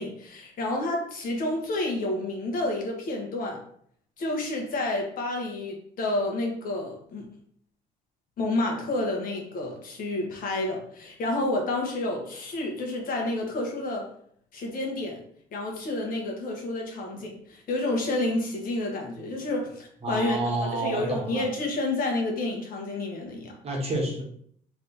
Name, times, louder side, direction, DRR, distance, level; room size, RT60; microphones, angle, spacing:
voice 1, 0.0-3.6 4.2-7.3 8.4-14.1 14.5-15.2 15.5-23.5, left 2 dB, 55° left, 0 dB, 1.3 m, -29 dB
voice 2, 20.0-21.5 23.6-24.2, right 2 dB, 40° right, -2 dB, 1.4 m, -29 dB
3.5 x 3.2 x 4.1 m, 0.64 s
cardioid pair, 110°, 17 cm